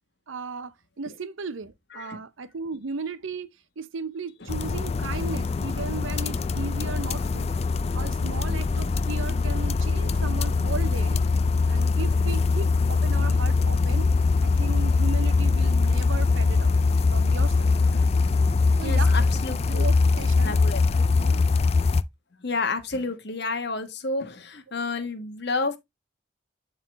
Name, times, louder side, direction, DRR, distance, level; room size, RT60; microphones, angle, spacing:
voice 1, 0.3-3.5 3.8-7.5 7.9-14.1 14.4-17.7 18.8-19.1 19.5-20.6 21.0-21.4, right 4 dB, 75° right, 0.7 m, -36 dB
sound 1, 4.5-22.0, left 4 dB, 30° left, 0.3 m, -22 dB
voice 2, 18.8-19.9 20.4-20.9 22.4-25.8, left 3 dB, 55° left, 1.3 m, -31 dB
11.0 x 3.8 x 3.2 m
head